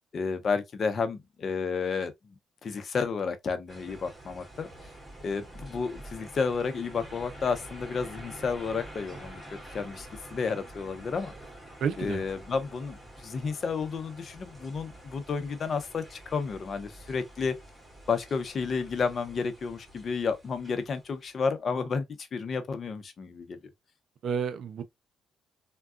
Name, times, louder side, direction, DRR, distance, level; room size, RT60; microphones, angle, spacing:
voice 1, 0.1-2.1 2.6-4.7 5.2-9.4 9.7-11.3 12.0-17.5 18.1-23.6, left 5 dB, 50° left, 0.7 m, -31 dB
sound 1, 3.7-21.1, right 1 dB, ahead, 2.3 m, -47 dB
voice 2, 11.8-12.2 24.2-24.8, right 7 dB, 65° right, 0.5 m, -30 dB
3.5 x 2.2 x 2.4 m
cardioid pair, 90°, 0 cm